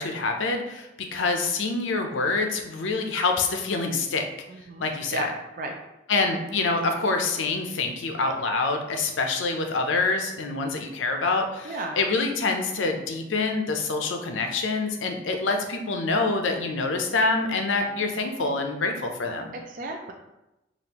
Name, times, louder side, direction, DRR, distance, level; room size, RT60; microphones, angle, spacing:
voice 1, 0.0-4.3 4.8-5.3 6.1-19.5, left 3 dB, 85° left, 4 dB, 0.6 m, -26 dB
voice 2, 4.5-5.3 5.6-5.7 11.6-12.0 19.7-20.1, right 2 dB, 45° right, 2 dB, 0.4 m, -34 dB
5.1 x 2.5 x 2.9 m, 0.94 s
head